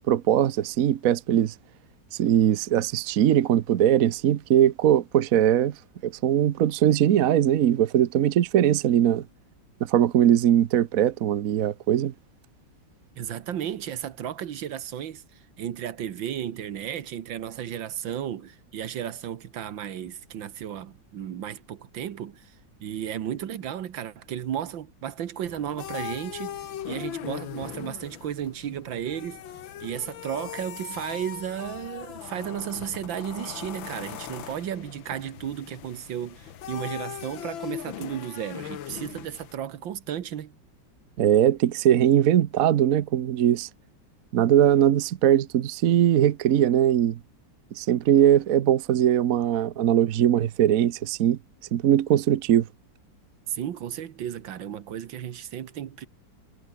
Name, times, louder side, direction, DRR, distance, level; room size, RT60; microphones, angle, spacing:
voice 1, 0.1-1.5 2.2-5.7 6.0-9.2 9.8-12.1 41.2-43.7 44.3-47.2 47.8-51.4 51.7-52.7, right 11 dB, 55° right, 1.0 m, -21 dB
voice 2, 13.2-15.2 15.6-22.5 22.8-26.5 26.9-29.4 29.8-40.5 53.5-56.1, right 10 dB, 75° right, 1.9 m, -34 dB
sound 1, 25.5-39.5, left 10 dB, 80° left, 1.9 m, -39 dB
omnidirectional pair, 2.1 m